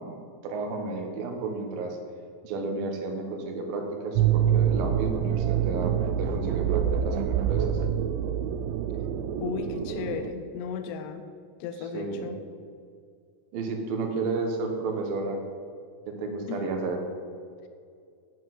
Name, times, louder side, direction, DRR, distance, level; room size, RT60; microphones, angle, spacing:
voice 1, 0.0-2.0 2.4-5.9 6.2-7.8 11.9-12.3 13.5-15.4 16.1-17.0, right 3 dB, 65° right, 3 dB, 2.7 m, -32 dB
sound 1, 4.1-10.3, right 9 dB, 85° right, 2.8 m, -26 dB
voice 2, 9.4-11.3 11.6-12.4 16.5-16.6, left 7 dB, 80° left, 7 dB, 2.7 m, -35 dB
9.7 x 8.4 x 7.7 m, 2.2 s
omnidirectional pair, 5.3 m